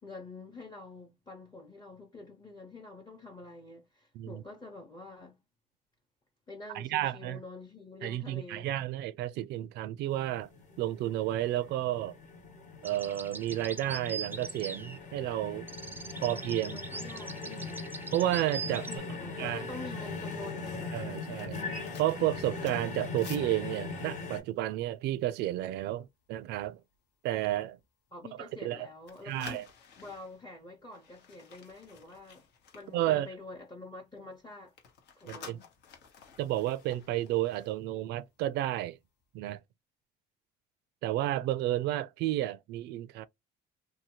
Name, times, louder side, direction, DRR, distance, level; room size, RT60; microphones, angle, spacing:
voice 1, 0.0-5.4 6.5-8.7 16.7-17.8 18.7-20.9 28.1-29.7 30.0-32.4 32.7-34.7 35.1-35.7, left 3 dB, 25° left, 0.8 m, -47 dB
voice 2, 6.7-7.4 8.0-10.5 10.8-12.2 12.8-15.7 16.2-16.9 18.1-18.8 19.4-19.7 20.9-21.7 22.0-26.8 27.2-27.8 28.6-28.9 29.2-29.6 32.9-33.3 35.3-35.6 36.4-39.0 39.3-39.6 41.0-43.3, right 14 dB, 80° right, 0.4 m, -31 dB
sound 1, 10.1-24.4, left 4 dB, 45° left, 1.1 m, -41 dB
sound 2, 12.8-15.3 15.7-19.0, right 4 dB, 10° right, 0.4 m, -41 dB
sound 3, 19.6-25.7 26.0-26.3 26.7-27.0 27.5-28.7 29.0-33.7 34.0-38.5 38.8-39.0, left 6 dB, 80° left, 1.0 m, -54 dB
2.7 x 2.2 x 2.9 m
cardioid pair, 110°, 17 cm